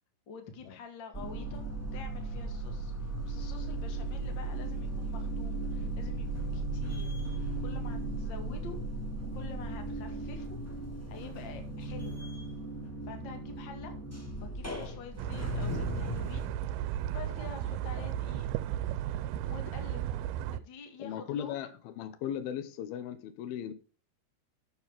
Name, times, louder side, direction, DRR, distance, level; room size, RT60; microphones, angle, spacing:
voice 1, 0.3-1.6 1.9-8.8 9.3-10.6 11.1-12.1 13.1-13.9 14.4-16.5 17.1-18.5 19.4-20.2 20.5-21.6, left 5 dB, 40° left, 2.1 m, -47 dB
sound 1, 1.1-16.5, right 2 dB, 15° left, 0.5 m, -36 dB
sound 2, 15.2-20.6, right 11 dB, 80° right, 2.4 m, -34 dB
voice 2, 21.0-23.7, left 9 dB, 75° left, 2.8 m, -37 dB
12.5 x 7.4 x 3.6 m
omnidirectional pair, 4.5 m